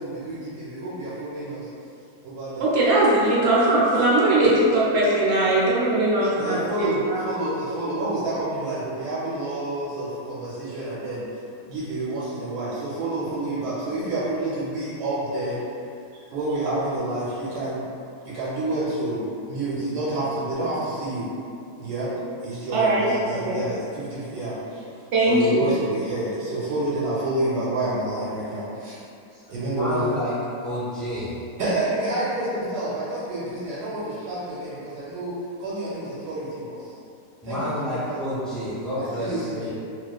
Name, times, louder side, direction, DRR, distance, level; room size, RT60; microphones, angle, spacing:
voice 1, 0.0-1.7 2.2-2.7 6.3-11.2 11.7-15.6 16.3-17.9 18.2-21.3 21.8-22.1 22.4-24.8 25.3-29.0 29.5-30.0 31.6-35.3 35.6-36.8 37.4-38.2 38.9-39.7, right 2 dB, 85° right, -10 dB, 1.1 m, -29 dB
voice 2, 2.6-7.2 22.7-23.7 25.1-25.7, right 1 dB, 70° right, -7 dB, 0.7 m, -20 dB
voice 3, 29.3-30.3 30.6-31.5 37.4-39.7, equal, ahead, -13 dB, 0.6 m, -30 dB
2.4 x 2.3 x 2.2 m, 2.5 s
omnidirectional pair, 1.6 m